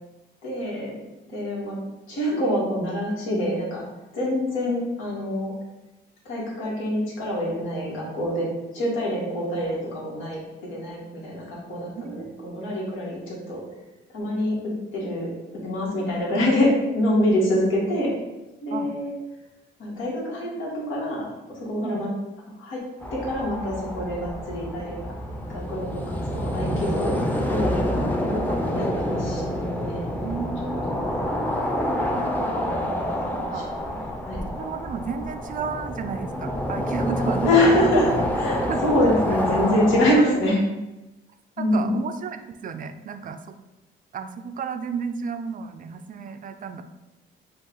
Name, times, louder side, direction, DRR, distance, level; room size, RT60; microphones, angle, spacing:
voice 1, 0.4-1.0 1.3-1.8 2.1-3.8 4.1-5.5 6.2-8.5 8.7-13.6 14.1-15.3 15.5-16.7 16.9-18.1 18.6-19.1 19.8-22.1 22.6-22.8 23.1-24.9 25.5-27.8 28.7-30.3 30.8-31.2 33.2-33.6 34.2-34.4 37.4-40.6 41.6-41.9, left 1 dB, 85° left, -5 dB, 1.6 m, -25 dB
voice 2, 11.9-12.6 18.7-18.9 20.4-20.5 21.8-22.0 28.0-28.2 28.5-28.7 30.2-31.0 32.6-32.9 33.3-33.7 34.5-37.9 38.6-38.8 41.6-43.5 44.1-46.8, right 6 dB, 45° right, 9 dB, 0.4 m, -33 dB
sound 1, 23.0-40.1, equal, 10° left, 0.6 m, -27 dB
5.3 x 2.4 x 3.8 m, 0.99 s
cardioid pair, 90°, 20 cm